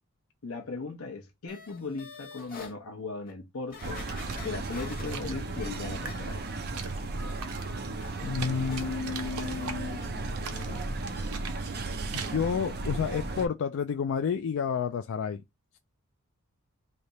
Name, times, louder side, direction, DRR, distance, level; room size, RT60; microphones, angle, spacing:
voice 1, 0.4-6.4, left 3 dB, 75° left, 0.8 m, -38 dB
sound 1, 1.5-2.7 3.3-3.4 3.7-6.7 7.0-10.1 10.4-10.7 11.1-11.2, left 5 dB, 40° left, 1.1 m, -48 dB
sound 2, 3.7-12.3, right 6 dB, 80° right, 0.7 m, -44 dB
sound 3, 3.8-13.5, right 3 dB, 45° right, 0.6 m, -35 dB
voice 2, 8.2-10.1 10.7-10.8 12.1-15.4, left 6 dB, 60° left, 0.3 m, -30 dB
3.3 x 2.8 x 4.0 m
head